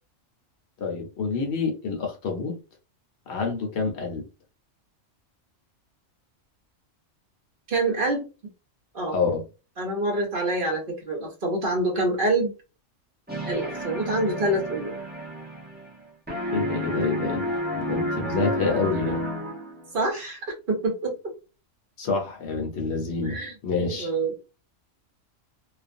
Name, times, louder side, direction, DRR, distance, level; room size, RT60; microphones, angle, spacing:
voice 1, 0.8-2.6 3.3-4.2 9.1-9.4 16.5-19.3 22.0-24.1, left 4 dB, 65° left, 0.9 m, -28 dB
voice 2, 7.7-8.3 8.9-9.2 9.8-12.5 13.5-14.9 19.9-21.1 23.2-23.5 23.8-24.4, right 2 dB, 50° right, 0.8 m, -26 dB
sound 1, 13.3-16.0 16.3-19.9, equal, 10° right, 0.5 m, -30 dB
2.4 x 2.1 x 2.5 m
omnidirectional pair, 1.3 m